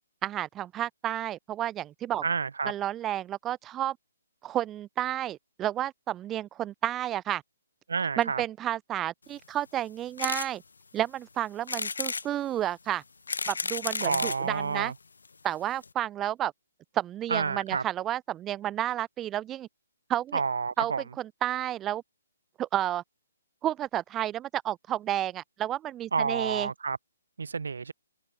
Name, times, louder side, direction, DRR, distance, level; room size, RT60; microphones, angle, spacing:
voice 1, 0.2-2.2 2.6-4.0 4.4-7.4 8.2-10.6 10.9-13.0 13.5-14.9 15.4-16.5 16.9-19.7 20.1-20.4 20.8-22.0 22.6-23.0 23.6-26.7, right 12 dB, 15° right, 0.6 m, -31 dB
voice 2, 2.2-2.7 7.9-8.4 14.0-14.9 17.3-17.8 20.3-21.0 26.1-27.0 27.4-27.9, right 5 dB, 70° right, 1.0 m, -29 dB
sound 1, 10.2-10.5 11.0-11.1 11.7-12.3 13.0-14.4 15.2-15.3 15.5-15.6 15.8-15.9, left 4 dB, 70° left, 1.4 m, -32 dB
open air
figure-of-eight pair, 135°, 0 cm